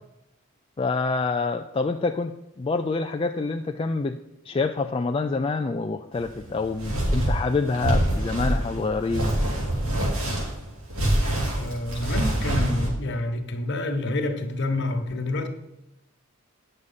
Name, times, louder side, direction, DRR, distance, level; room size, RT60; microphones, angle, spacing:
voice 1, 0.8-4.2 4.4-9.3, left 3 dB, 25° left, 5 dB, 0.3 m, -27 dB
sound 1, 6.2-12.9, right 1 dB, 85° right, 3.4 m, -25 dB
voice 2, 11.5-15.5, left 2 dB, 55° left, 5 dB, 1.2 m, -28 dB
9.5 x 6.6 x 5.5 m, 0.92 s
head